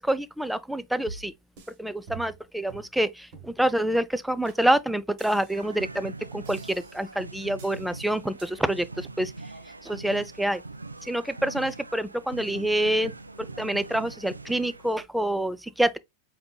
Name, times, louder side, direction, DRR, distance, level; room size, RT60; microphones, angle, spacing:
voice 1, 0.0-1.3 1.8-9.3 9.8-10.6 11.0-13.1 13.4-16.0, right 1 dB, ahead, 0.4 m, -27 dB
sound 1, 1.1-1.8 2.1-2.4 2.7-2.9 3.3-3.6 3.9-4.0 4.5-4.6 5.2-5.8 6.5-7.2 7.6-7.9 8.4-8.5, right 4 dB, 45° right, 1.4 m, -46 dB
sound 2, 5.6-15.1, right 3 dB, 80° right, 0.5 m, -42 dB
7.7 x 2.7 x 2.3 m
figure-of-eight pair, 90°, 0 cm